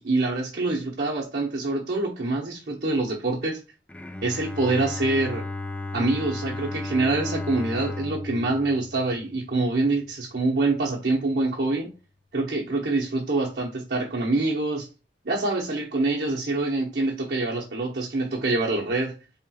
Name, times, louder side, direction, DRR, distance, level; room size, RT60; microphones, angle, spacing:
voice 1, 0.0-3.6 4.2-5.4 5.9-11.9 12.3-14.9 15.2-19.1, right 2 dB, 60° right, 1.0 m, -25 dB
Bowed string instrument, 3.9-9.9, left 2 dB, 10° left, 0.3 m, -34 dB
4.3 x 3.6 x 2.4 m
head